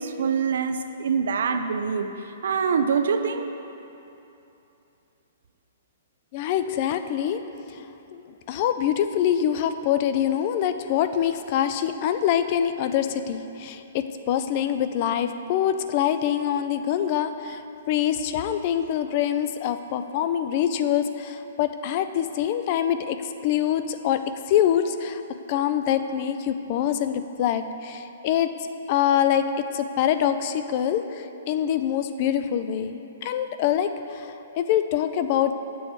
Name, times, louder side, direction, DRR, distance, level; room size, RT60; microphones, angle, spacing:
voice 1, 0.0-2.1 2.4-3.5, right 6 dB, 70° right, 8 dB, 0.4 m, -24 dB
voice 2, 6.3-7.4 7.7-7.8 8.1-24.2 24.5-25.2 25.5-28.5 28.9-29.4 29.7-35.6, left 10 dB, 35° left, 10 dB, 0.3 m, -25 dB
9.1 x 6.9 x 3.1 m, 2.9 s
hypercardioid pair, 165°, 0 cm